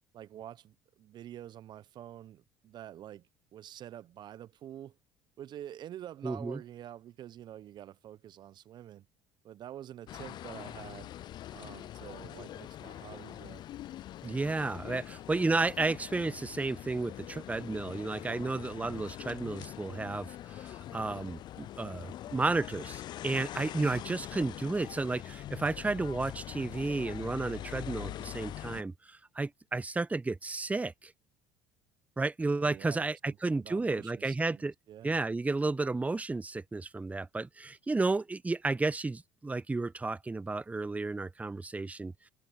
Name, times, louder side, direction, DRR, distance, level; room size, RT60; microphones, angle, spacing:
voice 1, 0.1-3.3 3.5-4.9 5.4-9.1 9.4-11.1 11.5-13.6 32.5-35.2, right 11 dB, 50° right, 1.1 m, -47 dB
voice 2, 6.2-6.6 14.2-31.1 32.2-34.7 35.0-42.1, right 3 dB, 15° right, 1.2 m, -32 dB
sound 1, 10.1-28.8, left 13 dB, 50° left, 0.5 m, -43 dB
hypercardioid pair, 70°, 10 cm